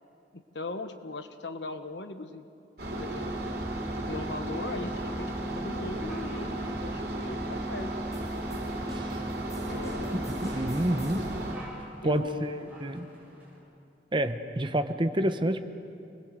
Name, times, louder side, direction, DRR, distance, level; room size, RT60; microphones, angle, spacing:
voice 1, 0.3-2.5 2.9-3.6 4.0-8.0 9.6-10.4 12.0-12.8, left 2 dB, 80° left, 8 dB, 1.4 m, -39 dB
sound 1, 2.8-11.5, right 1 dB, 60° right, 4.1 m, -34 dB
sound 2, 6.1-13.6, right 1 dB, 10° right, 7.3 m, -51 dB
sound 3, 8.1-11.4, left 1 dB, 20° left, 7.7 m, -47 dB
voice 2, 10.1-11.2 12.0-12.5 12.8-13.1 14.1-15.6, right 1 dB, 30° right, 9 dB, 1.0 m, -28 dB
27.5 x 20.5 x 8.1 m, 2.6 s
head